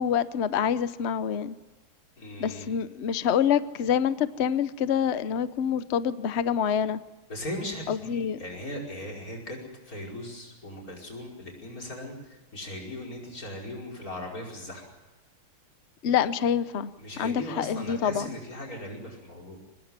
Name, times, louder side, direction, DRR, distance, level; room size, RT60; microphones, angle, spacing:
voice 1, 0.0-1.5 2.4-7.0 7.9-8.4 16.0-16.9 17.2-18.4, left 8 dB, 85° left, 13 dB, 0.6 m, -26 dB
voice 2, 2.2-2.7 7.3-14.8 17.0-19.6, left 1 dB, 40° left, 2 dB, 5.8 m, -38 dB
23.5 x 20.5 x 7.5 m, 1.2 s
omnidirectional pair, 2.3 m